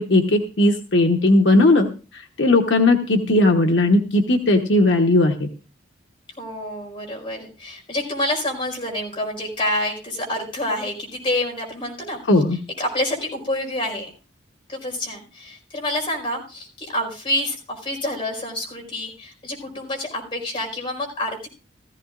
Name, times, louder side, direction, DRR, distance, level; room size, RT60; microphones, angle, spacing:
voice 1, 0.0-1.9 2.1-5.5 12.3-12.6, left 2 dB, 75° left, 3 dB, 1.1 m, -17 dB
voice 2, 6.4-12.2 12.8-14.1 14.7-21.5, left 1 dB, 30° left, 0 dB, 4.9 m, -27 dB
17.0 x 14.5 x 2.5 m, 0.33 s
head